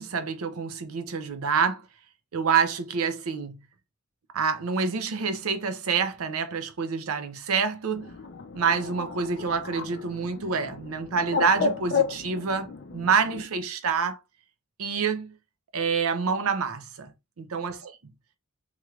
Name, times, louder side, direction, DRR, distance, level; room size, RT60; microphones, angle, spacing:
voice 1, 0.0-1.8 2.3-3.6 4.3-8.1 8.5-14.2 14.8-15.3 15.7-17.1 17.4-17.9, right 5 dB, 75° right, 0.6 m, -27 dB
Bird, 7.9-13.5, left 5 dB, 55° left, 0.5 m, -32 dB
3.1 x 3.0 x 2.4 m
head